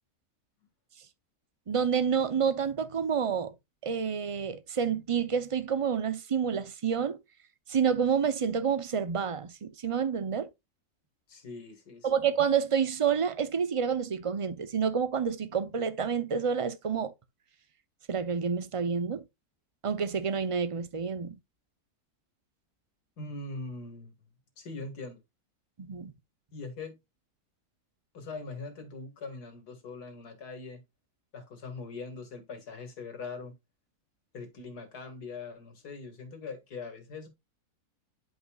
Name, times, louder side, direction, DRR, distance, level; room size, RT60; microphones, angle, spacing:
voice 1, 1.7-3.5 3.8-7.2 7.7-10.5 12.0-17.1 18.1-19.2 19.8-21.4 25.8-26.1, right 7 dB, 60° right, 0.3 m, -28 dB
voice 2, 11.3-12.3 23.2-24.1 24.6-25.2 26.5-27.0 28.1-30.8 31.3-33.5 34.3-37.3, left 3 dB, 80° left, 2.4 m, -42 dB
10.5 x 5.4 x 2.3 m
omnidirectional pair, 1.7 m